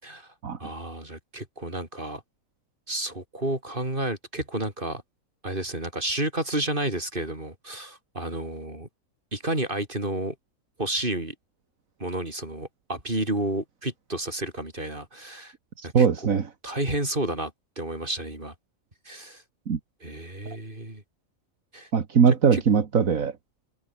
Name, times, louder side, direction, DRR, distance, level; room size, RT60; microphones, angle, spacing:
voice 1, 0.0-0.3 0.6-2.2 2.9-5.0 5.4-8.9 9.3-10.3 10.8-11.3 12.0-15.5 15.8-16.4 16.6-18.5 19.1-19.4 20.0-21.0 21.7-21.9 22.3-22.6, right 1 dB, 40° right, 6.0 m, -31 dB
voice 2, 15.8-16.5 19.7-19.8 21.9-23.3, right 6 dB, 80° right, 2.0 m, -21 dB
omnidirectional pair, 1.4 m